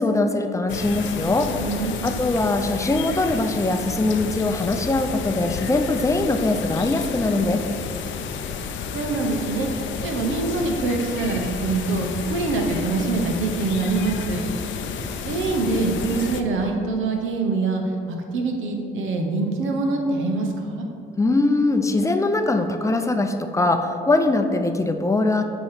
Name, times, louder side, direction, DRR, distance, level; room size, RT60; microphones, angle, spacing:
voice 1, 0.0-1.5 2.0-7.6 21.2-25.4, left 2 dB, 15° left, 6 dB, 0.5 m, -22 dB
sound 1, 0.7-16.4, left 6 dB, 70° left, 0.6 m, -31 dB
voice 2, 1.6-2.1 8.7-9.7 10.0-14.4 15.2-17.8 18.1-20.9, right 3 dB, 80° right, 2 dB, 1.1 m, -24 dB
8.4 x 3.1 x 5.7 m, 2.5 s
cardioid pair, 90°, 20 cm